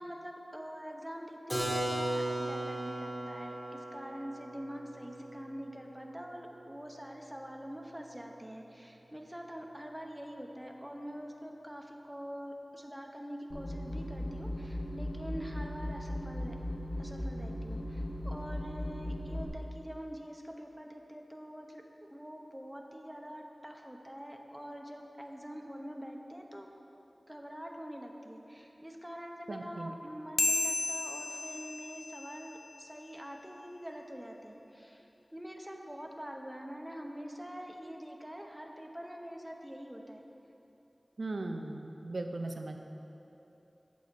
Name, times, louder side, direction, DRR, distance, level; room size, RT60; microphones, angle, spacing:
voice 1, 0.0-16.6 17.0-26.7 27.3-40.2, equal, 10° right, 2 dB, 0.8 m, -45 dB
Keyboard (musical), 1.5-7.1, right 1 dB, 10° left, 1.8 m, -37 dB
sound 1, 13.5-19.4, left 1 dB, 85° left, 1.5 m, -38 dB
voice 2, 29.5-29.9 41.2-42.8, right 2 dB, 80° right, 4 dB, 0.5 m, -38 dB
sound 2, 30.4-33.2, left 2 dB, 50° left, 0.3 m, -34 dB
8.3 x 4.1 x 6.8 m, 3.0 s
wide cardioid pair, 55°, 0 cm